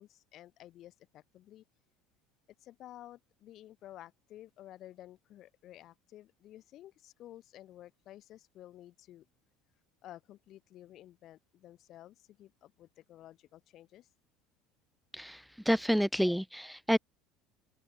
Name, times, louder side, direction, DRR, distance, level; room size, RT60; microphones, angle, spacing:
voice 1, 0.0-1.6 2.6-9.3 10.0-14.1, left 13 dB, 55° left, 6.5 m, -53 dB
voice 2, 15.1-17.0, equal, ahead, 0.8 m, -29 dB
open air
supercardioid pair, 95°, 0 cm